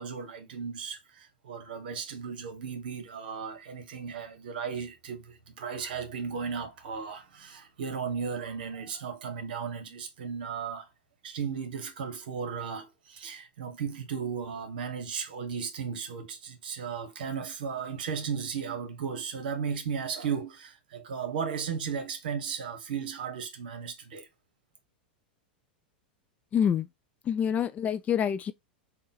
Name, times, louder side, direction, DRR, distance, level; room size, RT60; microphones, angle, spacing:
voice 1, 0.0-10.9 11.2-24.3, right 6 dB, 70° right, 1.0 m, -35 dB
voice 2, 26.5-26.9 27.3-28.5, left 8 dB, 30° left, 0.4 m, -26 dB
3.6 x 2.2 x 4.1 m
hypercardioid pair, 95°, 5 cm